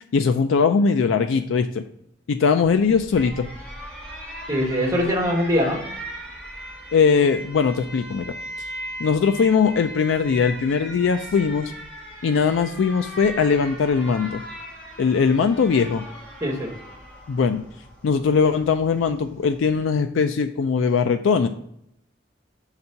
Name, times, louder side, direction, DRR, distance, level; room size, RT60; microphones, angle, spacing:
voice 1, 0.1-1.8 2.3-3.5 6.9-8.3 9.0-11.7 12.2-14.4 15.0-16.0 17.3-17.6 18.0-21.5, left 5 dB, 80° left, 8 dB, 0.4 m, -20 dB
Alarm, 2.6-19.9, right 1 dB, 5° left, 1.3 m, -39 dB
voice 2, 4.5-5.8 16.4-16.7, equal, 15° right, -2 dB, 1.6 m, -22 dB
5.3 x 4.1 x 5.7 m, 0.73 s
head